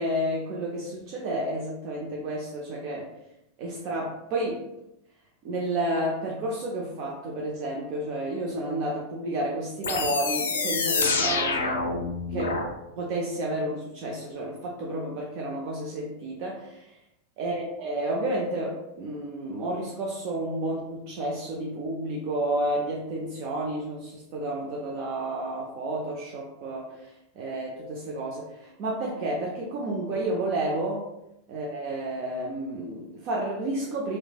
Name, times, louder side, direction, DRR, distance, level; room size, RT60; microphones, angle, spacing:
voice 1, 0.0-3.1 3.6-4.7 5.4-11.8 12.3-12.6 13.0-16.9 17.4-31.0 31.5-34.2, right 1 dB, 55° right, -3 dB, 0.5 m, -31 dB
sound 1, 9.8-12.7, left 4 dB, 80° left, 0.4 m, -27 dB
3.1 x 2.1 x 2.3 m, 0.87 s
hypercardioid pair, 95°, 0 cm